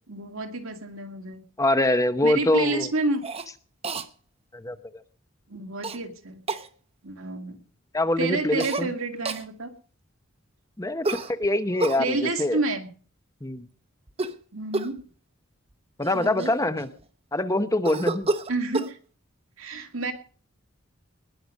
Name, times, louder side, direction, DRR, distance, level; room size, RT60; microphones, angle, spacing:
voice 1, 0.1-1.4 2.2-3.2 5.5-6.5 7.0-7.6 8.2-9.7 12.0-12.9 14.5-15.0 16.1-16.5 18.5-19.0 19.6-20.1, right 3 dB, 85° right, 5 dB, 2.2 m, -29 dB
voice 2, 1.6-2.9 4.5-5.0 7.9-8.9 10.8-12.6 13.4-13.6 16.0-16.9 17.3-18.3, left 1 dB, 15° left, 11 dB, 0.8 m, -24 dB
Cough, 3.2-3.5 3.8-4.1 5.8-6.0 6.5-6.7 8.6-8.9 9.3-9.5 11.0-12.0 14.1-14.4 14.7-15.0 15.7-15.8 16.0-17.0 17.8-18.9, right 3 dB, 30° right, 0.9 m, -30 dB
20.0 x 6.8 x 6.3 m, 0.41 s
head